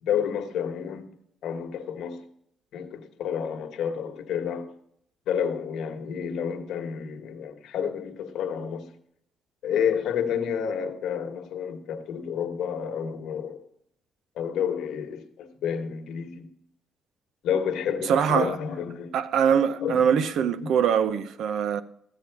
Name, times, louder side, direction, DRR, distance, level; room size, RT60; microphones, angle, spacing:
voice 1, 0.0-1.1 1.4-2.2 2.7-4.7 5.3-8.9 9.6-13.6 14.4-16.5 17.4-19.1 19.8-20.7, left 8 dB, 80° left, 1.3 m, -30 dB
voice 2, 18.1-18.5 19.1-21.8, right 8 dB, 75° right, 0.6 m, -23 dB
14.5 x 8.7 x 4.7 m
cardioid pair, 90°, 0 cm